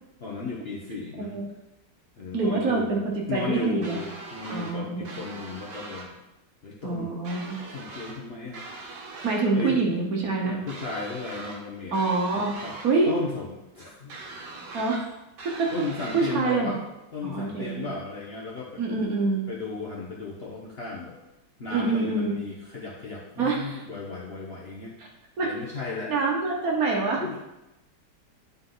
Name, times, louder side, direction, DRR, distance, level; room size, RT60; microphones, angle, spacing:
voice 1, 0.2-1.4 2.2-3.0 3.3-6.1 6.6-7.1 7.7-8.7 9.5-9.8 10.5-12.0 12.6-12.8 13.1-14.1 15.7-16.8 17.1-18.8 19.5-21.2 21.6-25.0 25.4-26.1 27.2-27.4, left 4 dB, 45° left, -4 dB, 0.9 m, -35 dB
voice 2, 0.9-1.4 2.3-4.0 4.5-5.1 6.8-7.6 9.2-10.5 11.9-12.5 12.8-13.1 14.7-15.1 15.6-15.7 16.1-16.8 17.2-17.9 18.8-19.4 21.7-22.4 23.4-23.8 25.0-25.1 25.4-25.5 26.1-27.2, right 3 dB, 55° right, -1 dB, 1.5 m, -26 dB
sound 1, 3.8-4.7 5.0-6.1 7.2-8.2 8.5-9.5 10.7-11.6 11.9-12.9 14.1-15.0 15.4-16.4, right 3 dB, 75° right, 1.6 m, -41 dB
9.5 x 4.1 x 3.9 m, 0.94 s
omnidirectional pair, 1.9 m